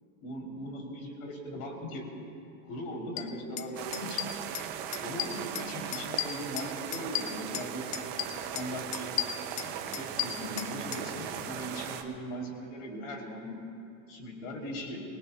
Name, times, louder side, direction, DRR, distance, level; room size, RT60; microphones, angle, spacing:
voice 1, 0.2-2.1 2.7-4.3 5.0-8.1 8.4-9.1 9.6-13.6 14.1-15.0, equal, 55° left, 0 dB, 3.4 m, -39 dB
sound 1, 3.2-3.3 3.6-3.7 3.9-4.7 4.9-5.7 5.9-7.7 7.9-8.7 8.9-11.0, left 13 dB, 35° left, 0.5 m, -34 dB
sound 2, 3.8-12.0, right 9 dB, 25° right, 0.5 m, -38 dB
25.5 x 19.5 x 2.3 m, 2.6 s
supercardioid pair, 150°, 45 cm